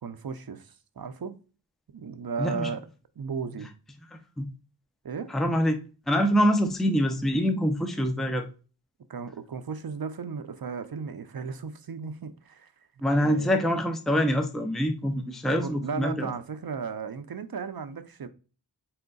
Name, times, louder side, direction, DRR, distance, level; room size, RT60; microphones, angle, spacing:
voice 1, 0.0-1.3 1.9-2.8 3.2-3.7 5.0-5.3 9.1-12.7 13.2-13.5 15.6-18.3, right 5 dB, 55° right, 0.7 m, -35 dB
voice 2, 2.4-2.7 4.1-4.5 5.3-5.8 6.1-8.5 13.0-16.3, equal, ahead, 0.6 m, -25 dB
4.2 x 3.9 x 2.3 m
cardioid pair, 40°, 44 cm